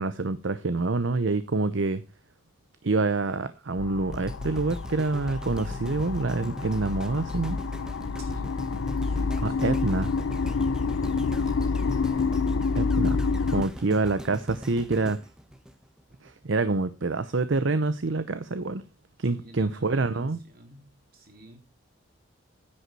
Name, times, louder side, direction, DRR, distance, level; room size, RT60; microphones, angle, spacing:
voice 1, 0.0-2.0 2.8-7.6 9.4-10.1 12.8-13.2 13.5-15.2 16.2-18.8 19.2-20.4, right 3 dB, 65° right, 0.7 m, -26 dB
sound 1, 3.8-13.6, left 4 dB, 75° left, 0.5 m, -28 dB
sound 2, 4.1-16.3 16.9-17.0, equal, 5° right, 0.9 m, -41 dB
voice 2, 8.2-9.7 11.5-12.4 19.3-21.6, right 1 dB, 50° right, 3.6 m, -51 dB
10.0 x 8.3 x 4.7 m
head